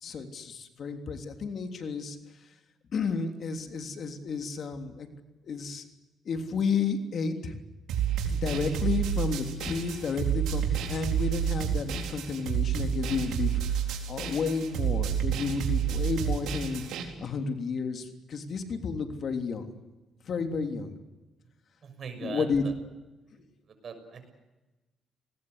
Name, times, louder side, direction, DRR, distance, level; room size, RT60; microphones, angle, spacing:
voice 1, 0.0-2.2 2.9-5.1 5.4-5.8 6.2-7.6 8.2-16.8 17.2-19.7 20.2-20.9 22.2-22.6 23.3-23.4, left 5 dB, 55° left, 6 dB, 3.3 m, -32 dB
sound 1, 7.9-17.0, right 8 dB, 85° right, 4.2 m, -29 dB
voice 2, 21.8-22.5 23.8-24.3, right 6 dB, 55° right, 8 dB, 6.4 m, -39 dB
29.0 x 20.0 x 8.2 m, 1.1 s
cardioid pair, 90°, 0 cm